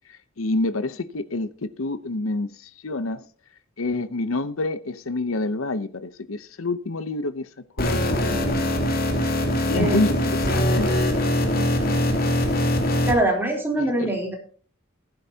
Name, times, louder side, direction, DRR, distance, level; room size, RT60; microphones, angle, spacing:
voice 1, 0.1-3.2 3.8-7.5 7.8-8.8 9.7-10.2 10.5-10.9 13.8-14.1, left 2 dB, 75° left, 0.8 m, -27 dB
sound 1, 7.8-13.1, left 1 dB, 45° left, 3.0 m, -22 dB
voice 2, 11.4-12.2 13.1-14.3, right 1 dB, 10° right, 3.6 m, -25 dB
15.5 x 11.5 x 2.8 m
head